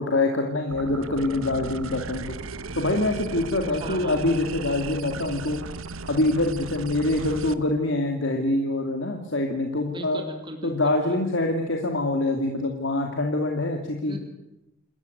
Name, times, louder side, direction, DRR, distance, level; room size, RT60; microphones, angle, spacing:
voice 1, 0.0-2.4 2.8-5.6 6.1-10.2 10.6-14.2, left 2 dB, 60° left, 3 dB, 2.6 m, -25 dB
sound 1, 0.7-7.5, right 3 dB, 75° right, 1.1 m, -36 dB
voice 2, 3.6-4.4 9.8-11.2 14.1-14.2, right 1 dB, 20° right, 4 dB, 3.1 m, -38 dB
28.5 x 14.5 x 9.4 m, 0.91 s
head